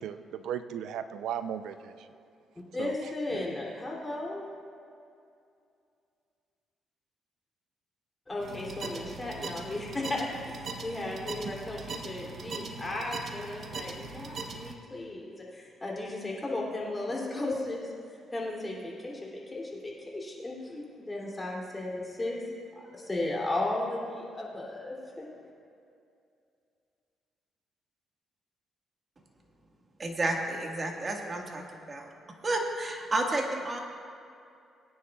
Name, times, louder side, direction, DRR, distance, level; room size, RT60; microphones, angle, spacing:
voice 1, 0.0-2.1 2.8-2.9 3.3-3.5, right 9 dB, 85° right, 10 dB, 0.6 m, -36 dB
voice 2, 2.5-4.5 8.3-17.9 18.3-25.3, left 2 dB, 20° left, -3 dB, 3.0 m, -35 dB
sound 1, 8.4-14.7, right 4 dB, 55° right, 1.1 m, -40 dB
voice 3, 30.0-32.1 32.4-33.8, right 2 dB, 30° right, 1 dB, 1.8 m, -31 dB
22.0 x 9.8 x 2.4 m, 2.5 s
cardioid pair, 90°, 0 cm